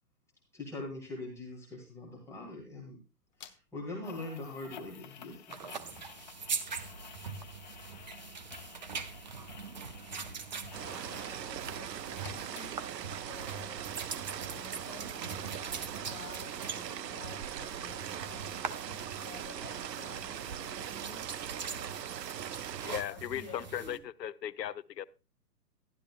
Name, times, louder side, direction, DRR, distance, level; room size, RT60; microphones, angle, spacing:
voice 1, 0.5-3.0 3.4-6.0 11.2-11.3 12.2-12.3 14.1-14.2, left 2 dB, 5° left, -3 dB, 1.7 m, -43 dB
sound 1, 3.4-3.5 4.0-11.5 11.8-13.2 13.5-13.6, left 9 dB, 30° left, 0.5 m, -53 dB
sound 2, 5.5-24.0, right 5 dB, 30° right, 0.4 m, -43 dB
sound 3, 10.7-23.0, right 10 dB, 80° right, 0.6 m, -40 dB
voice 2, 10.8-21.2 23.1-24.0, left 5 dB, 45° left, 1 dB, 2.2 m, -52 dB
voice 3, 22.8-25.1, left 10 dB, 80° left, 17 dB, 0.7 m, -37 dB
12.0 x 11.0 x 2.3 m, 0.31 s
hypercardioid pair, 135°, 49 cm